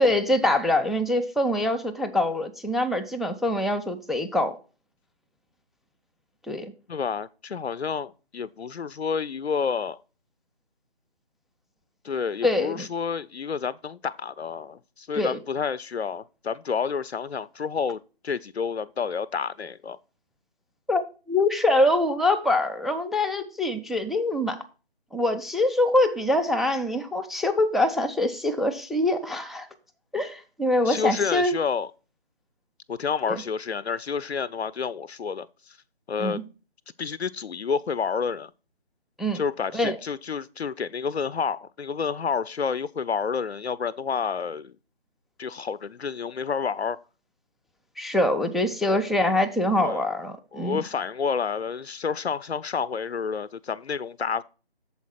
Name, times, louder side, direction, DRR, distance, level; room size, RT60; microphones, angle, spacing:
voice 1, 0.0-4.6 6.5-6.7 12.4-12.9 15.1-15.4 20.9-24.6 25.1-29.7 30.1-31.5 33.3-33.4 36.2-36.4 39.2-39.4 39.7-40.0 48.0-50.8, left 1 dB, ahead, 0.3 m, -24 dB
voice 2, 6.9-10.0 12.0-20.0 30.9-31.9 32.9-35.8 36.1-36.4 37.0-38.5 39.3-44.7 45.4-47.0 48.9-49.0 49.8-50.0 50.5-54.4, left 6 dB, 85° left, 0.5 m, -29 dB
7.1 x 4.3 x 5.7 m
figure-of-eight pair, 160°, 31 cm